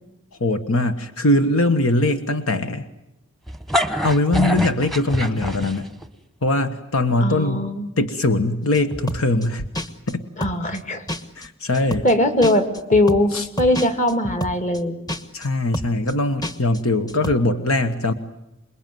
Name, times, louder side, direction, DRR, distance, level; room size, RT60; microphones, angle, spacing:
voice 1, 0.4-2.9 4.0-5.9 6.4-7.6 8.0-9.6 10.1-10.2 11.3-12.0 13.3-13.5 15.3-18.1, left 2 dB, 75° left, 9 dB, 1.4 m, -21 dB
sound 1, 3.5-6.1, equal, ahead, 1.2 m, -24 dB
voice 2, 7.2-7.9 10.4-11.0 12.0-15.0, left 1 dB, 35° left, 8 dB, 2.5 m, -20 dB
sound 2, 8.7-9.5 9.7-10.1 10.4-10.8 11.1-11.5 11.7-12.1 12.4-14.8 15.1-15.5 15.7-16.1 16.4-16.8 17.1-17.3, equal, 20° left, 1.3 m, -29 dB
27.5 x 21.0 x 9.4 m, 0.85 s
head